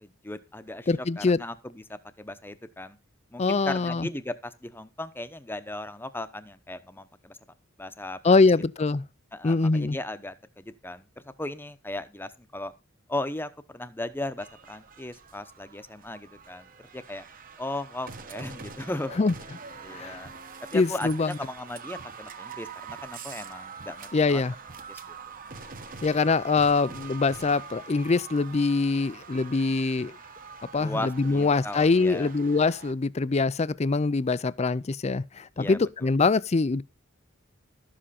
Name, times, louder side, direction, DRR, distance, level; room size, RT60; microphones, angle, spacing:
voice 1, 0.0-3.0 3.3-8.4 9.3-11.1 11.4-12.7 13.1-17.3 17.6-19.1 19.8-20.3 20.7-24.4 24.9-25.1 30.8-32.3 35.6-36.1, left 1 dB, 10° left, 0.9 m, -37 dB
voice 2, 0.9-1.4 3.4-4.1 8.2-9.0 9.4-10.0 19.2-19.3 19.9-20.2 20.7-21.3 24.1-24.5 26.0-30.1 30.7-36.8, left 3 dB, 35° left, 0.5 m, -24 dB
sound 1, 14.4-32.9, right 5 dB, 45° right, 1.3 m, -44 dB
12.5 x 7.7 x 4.2 m
head